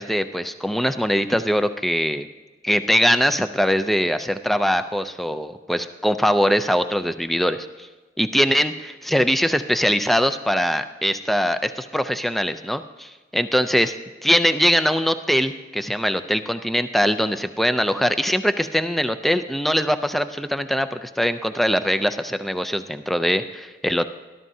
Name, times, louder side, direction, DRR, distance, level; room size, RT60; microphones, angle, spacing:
voice 1, 0.0-2.3 2.6-7.9 8.2-13.9 14.2-24.1, equal, ahead, 9 dB, 0.4 m, -22 dB
20.5 x 12.0 x 2.7 m, 1.2 s
head